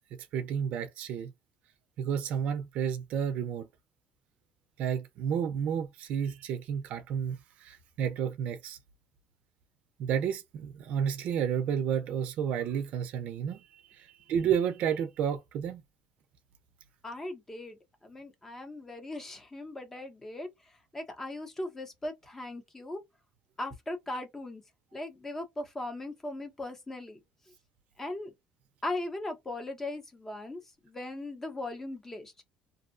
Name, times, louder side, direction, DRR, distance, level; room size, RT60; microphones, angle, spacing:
voice 1, 0.3-1.3 2.0-3.7 4.8-8.8 10.0-15.8, right 8 dB, 55° right, 0.5 m, -31 dB
voice 2, 17.0-23.0 23.6-24.6 24.9-27.2 28.0-28.3 28.8-32.3, left 2 dB, 15° left, 0.7 m, -39 dB
2.6 x 2.0 x 2.5 m
cardioid pair, 160°, 3 cm